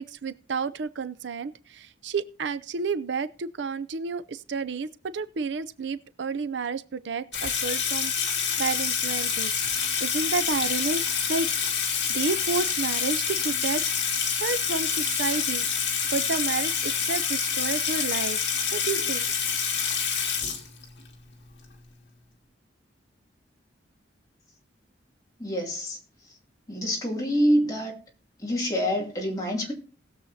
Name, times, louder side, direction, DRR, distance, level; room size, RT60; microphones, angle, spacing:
voice 1, 0.0-9.5 10.0-11.0 11.3-11.5 12.1-13.8 14.3-15.7 16.1-18.4 18.7-19.3, right 4 dB, 70° right, 0.5 m, -31 dB
Water tap faucet / Sink (filling or washing), 7.3-21.1, left 7 dB, 65° left, 2.1 m, -27 dB
voice 2, 25.4-26.0 26.7-27.9 28.4-29.7, equal, 20° left, 2.6 m, -26 dB
19.5 x 7.2 x 2.7 m
head